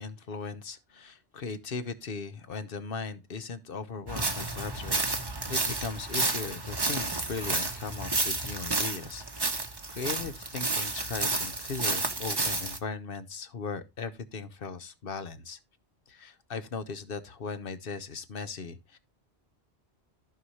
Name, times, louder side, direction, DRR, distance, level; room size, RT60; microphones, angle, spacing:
voice 1, 0.0-5.0 5.5-9.6 9.9-15.6 16.1-19.0, left 5 dB, 60° left, 1.1 m, -38 dB
sound 1, 4.1-12.8, right 3 dB, 25° right, 0.9 m, -31 dB
14.5 x 5.6 x 3.1 m
omnidirectional pair, 1.1 m